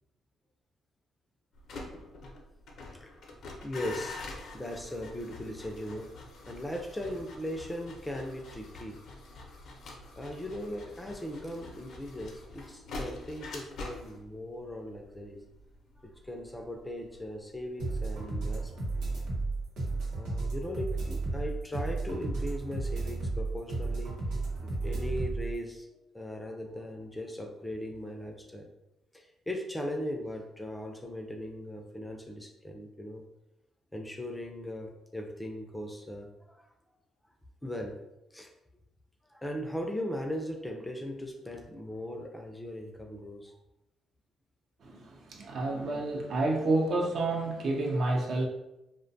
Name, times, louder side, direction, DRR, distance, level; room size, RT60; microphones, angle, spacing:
sound 1, 1.5-18.5 18.8-19.3, left 2 dB, 70° left, 0.5 m, -46 dB
voice 1, 3.6-4.2 4.5-6.1 6.5-9.0 10.2-15.4 16.0-19.1 20.1-24.1 24.6-25.9 26.1-28.7 29.1-33.2 33.9-36.7 37.6-38.0 38.3-38.5 39.3-43.6, left 1 dB, 10° left, 3 dB, 0.4 m, -38 dB
sound 2, 17.8-25.5, right 3 dB, 85° right, 0.8 m, -33 dB
voice 2, 44.8-48.5, right 2 dB, 60° right, 1 dB, 0.5 m, -29 dB
2.5 x 2.1 x 2.6 m, 0.91 s
cardioid pair, 90°, 0 cm